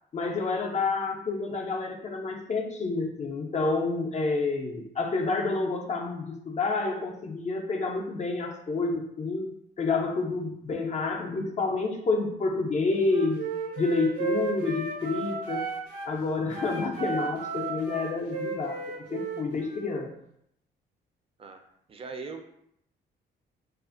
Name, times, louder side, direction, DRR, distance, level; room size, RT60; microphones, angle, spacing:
voice 1, 0.1-9.5 9.8-13.5 13.8-15.7 16.1-18.9 19.1-20.1, left 3 dB, 35° left, 1 dB, 0.4 m, -29 dB
Wind instrument woodwind instrument, 13.0-16.1 16.5-19.9, right 5 dB, 80° right, 0.6 m, -34 dB
voice 2, 21.9-22.5, right 4 dB, 30° right, 5 dB, 0.4 m, -39 dB
2.4 x 2.4 x 2.4 m, 0.74 s
cardioid pair, 90°, 20 cm